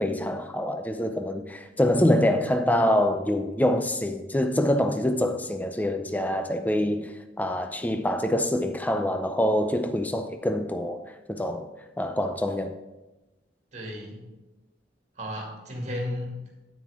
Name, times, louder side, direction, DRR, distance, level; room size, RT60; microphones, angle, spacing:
voice 1, 0.0-7.1 7.4-11.0 11.3-11.7 12.0-12.7, left 1 dB, 10° left, 0.5 m, -25 dB
voice 2, 13.7-14.3 15.2-16.5, left 1 dB, 40° right, 2.4 m, -34 dB
9.6 x 9.3 x 3.6 m
head